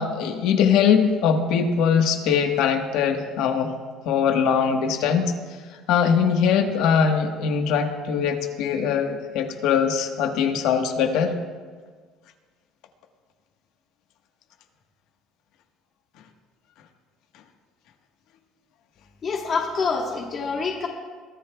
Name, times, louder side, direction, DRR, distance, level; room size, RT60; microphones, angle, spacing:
voice 1, 0.0-3.7 4.0-5.3 5.9-11.3, left 7 dB, 70° left, 5 dB, 1.3 m, -21 dB
voice 2, 19.2-20.9, left 4 dB, 35° left, 1 dB, 1.2 m, -26 dB
22.5 x 14.0 x 2.3 m, 1.5 s
cardioid pair, 150°, 0 cm